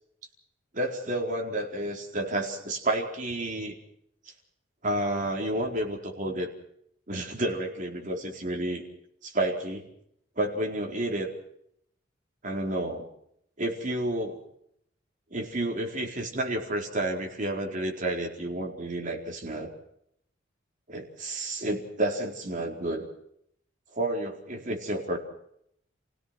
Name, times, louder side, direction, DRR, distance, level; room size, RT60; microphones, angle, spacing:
voice 1, 0.7-3.7 4.8-6.5 7.1-8.8 9.2-9.8 10.4-11.3 12.4-13.0 13.6-14.4 15.3-19.7 20.9-23.1 23.9-25.2, right 1 dB, 45° right, 2 dB, 4.5 m, -30 dB
30.0 x 17.0 x 6.2 m, 0.72 s
head